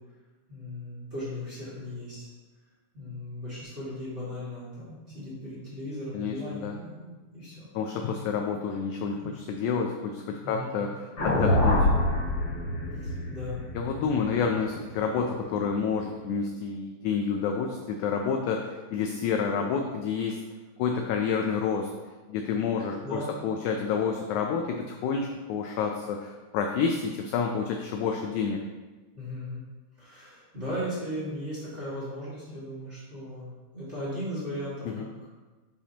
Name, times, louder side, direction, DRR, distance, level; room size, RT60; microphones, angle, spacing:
voice 1, 0.5-2.3 2.9-7.7 10.4-10.9 13.0-13.6 14.0-14.2 23.0-23.4 29.1-29.6 30.0-33.5 33.7-35.1, equal, 25° right, -9 dB, 2.1 m, -37 dB
voice 2, 6.1-6.8 7.7-11.9 13.7-20.4 20.8-21.9 22.3-28.6 34.8-35.1, left 6 dB, 85° left, 3 dB, 1.7 m, -29 dB
sound 1, 11.2-15.4, left 1 dB, 35° left, 2.9 m, -26 dB
10.0 x 5.0 x 2.9 m, 1.3 s
omnidirectional pair, 4.0 m